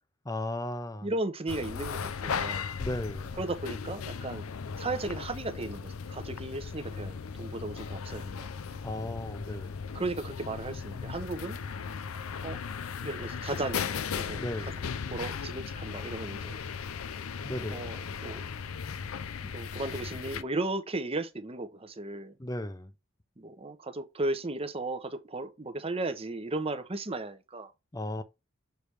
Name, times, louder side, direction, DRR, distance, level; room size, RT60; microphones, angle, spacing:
voice 1, 0.2-1.1 2.8-3.3 8.8-9.8 14.4-14.8 17.4-17.9 22.4-22.9 27.9-28.2, left 1 dB, 15° left, 0.6 m, -35 dB
voice 2, 1.0-2.6 3.3-4.4 4.8-8.5 9.9-11.6 12.4-12.6 13.0-14.4 15.1-16.5 17.7-18.4 19.4-22.3 23.4-27.7, right 2 dB, 30° right, 0.8 m, -35 dB
sound 1, 1.5-20.4, left 6 dB, 90° left, 0.5 m, -37 dB
6.9 x 3.3 x 4.6 m
head